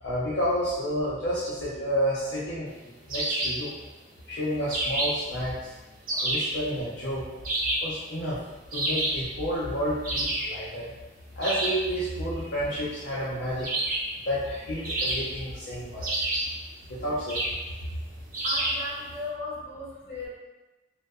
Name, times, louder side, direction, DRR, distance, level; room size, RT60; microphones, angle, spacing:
voice 1, 0.0-2.7 3.1-3.7 4.3-5.7 6.1-7.5 7.8-8.4 8.7-10.9 11.4-13.7 14.3-16.3 16.9-17.7, equal, 60° left, -10 dB, 0.5 m, -30 dB
sound 1, 3.1-3.7 4.7-5.3 6.1-6.6 7.4-8.0 8.7-9.3 10.0-10.6 11.4-11.9 13.6-14.2 14.8-15.5 16.0-16.6 17.3-17.6 18.3-18.9, right 1 dB, 45° right, 0.4 m, -28 dB
voice 2, 18.4-20.3, left 2 dB, 35° left, -9 dB, 1.0 m, -36 dB
2.7 x 2.0 x 2.3 m, 1.1 s
head